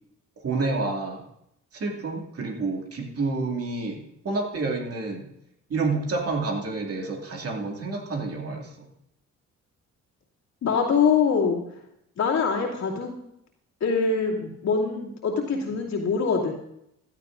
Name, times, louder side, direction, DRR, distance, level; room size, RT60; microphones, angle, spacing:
voice 1, 0.4-1.2 1.7-5.3 5.7-8.9, right 3 dB, 50° right, 1 dB, 2.5 m, -29 dB
voice 2, 10.6-11.6 12.2-13.1 13.8-16.5, left 5 dB, 65° left, -2 dB, 2.6 m, -24 dB
16.0 x 12.0 x 2.6 m, 0.79 s
cardioid pair, 90°, 30 cm